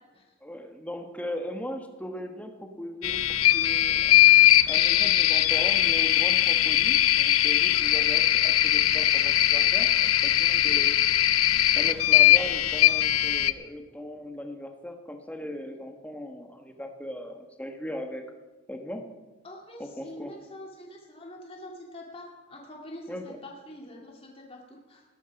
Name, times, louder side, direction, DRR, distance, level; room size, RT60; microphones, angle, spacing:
voice 1, 0.4-4.2 4.7-9.9 10.2-10.9 11.8-18.2 18.7-19.0 19.8-20.3 23.1-23.4, equal, 5° left, 5 dB, 1.3 m, -38 dB
sound 1, 3.0-13.5, left 13 dB, 85° left, 0.7 m, -21 dB
voice 2, 19.4-25.0, left 1 dB, 25° left, -1 dB, 2.3 m, -45 dB
15.5 x 13.0 x 5.9 m, 1.2 s
head